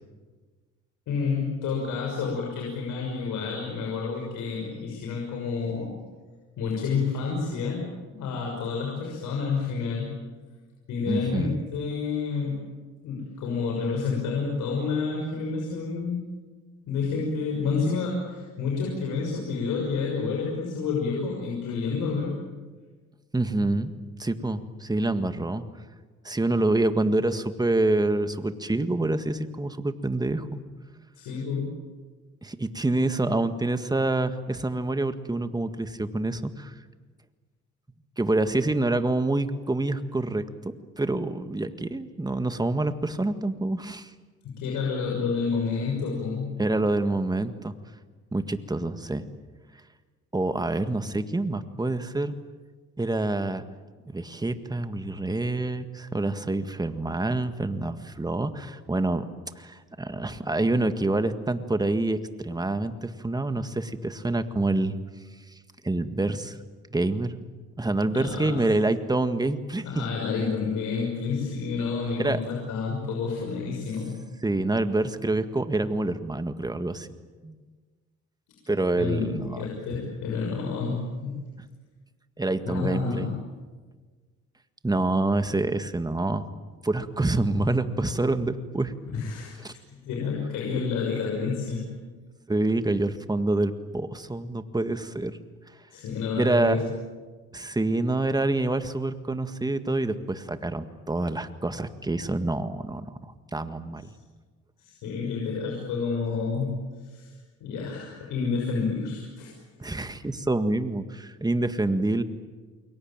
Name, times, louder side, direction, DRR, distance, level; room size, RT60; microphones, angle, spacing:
voice 1, 1.1-5.9 6.6-10.1 10.9-12.6 13.0-16.2 16.9-22.3 31.2-31.7 44.4-46.5 68.0-68.5 69.8-74.1 79.0-81.4 82.6-83.3 89.1-91.9 95.9-96.8 104.8-106.7 107.0-107.3 107.6-109.5, left 5 dB, 90° left, -2 dB, 6.4 m, -29 dB
voice 2, 11.0-11.6 23.3-23.9 24.2-25.6 26.2-30.6 32.4-36.7 38.2-44.1 46.6-47.7 48.3-49.2 50.3-52.3 53.0-53.6 54.1-59.2 59.6-64.9 65.8-66.6 66.9-67.4 67.8-70.0 72.2-72.4 74.4-77.1 77.4-77.5 78.7-79.6 82.4-83.3 84.8-86.5 86.8-88.9 89.6-89.7 92.5-95.4 96.3-96.8 97.5-104.0 109.8-112.2, right 2 dB, 15° right, 9 dB, 1.8 m, -27 dB
29.0 x 22.5 x 9.0 m, 1.4 s
cardioid pair, 90°, 30 cm